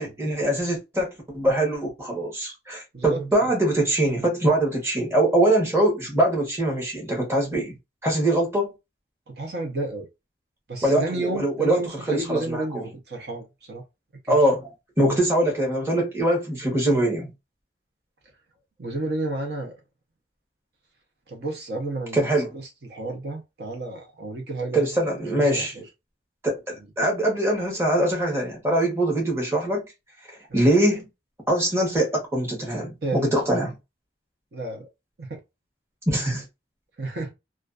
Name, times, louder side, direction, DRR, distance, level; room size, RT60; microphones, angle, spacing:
voice 1, 0.0-7.8 8.0-8.7 10.8-12.8 14.3-14.7 15.0-17.3 22.1-22.5 24.7-25.7 26.4-29.8 30.5-31.1 31.5-33.7 36.1-36.4, right 1 dB, 15° right, 0.9 m, -23 dB
voice 2, 2.9-3.5 9.3-10.1 10.7-13.8 14.2-14.4 18.8-19.8 21.3-25.7 30.5-30.7 33.0-33.5 34.5-34.9 35.2-35.4 37.0-37.3, right 2 dB, 65° right, 0.7 m, -32 dB
2.5 x 2.3 x 2.3 m
head